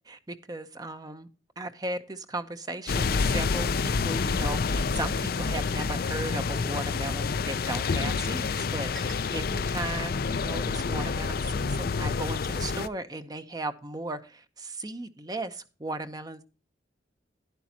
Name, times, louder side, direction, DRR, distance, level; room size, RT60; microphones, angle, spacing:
voice 1, 0.1-1.3 1.6-16.4, right 2 dB, 20° right, 0.8 m, -36 dB
sound 1, 2.9-12.9, left 4 dB, 55° left, 0.5 m, -28 dB
sound 2, 4.7-4.8 5.7-5.9 6.8-6.9 8.0-8.1 8.9-9.3, right 2 dB, 5° left, 0.9 m, -46 dB
11.5 x 10.5 x 2.8 m
head